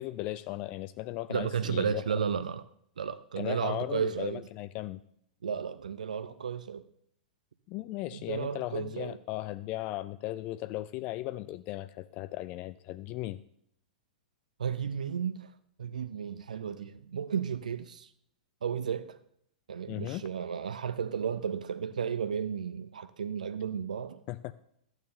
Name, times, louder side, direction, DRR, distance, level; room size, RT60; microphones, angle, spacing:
voice 1, 0.0-2.0 3.4-5.0 7.7-13.4 19.9-20.2 24.3-24.5, left 16 dB, 35° left, 0.3 m, -37 dB
voice 2, 1.3-2.6 3.0-4.5 5.4-6.8 8.1-9.2 14.6-15.5 15.8-18.1 18.6-19.2 19.7-24.2, right 7 dB, 65° right, 0.5 m, -33 dB
12.0 x 9.0 x 3.6 m
figure-of-eight pair, 100°, 4 cm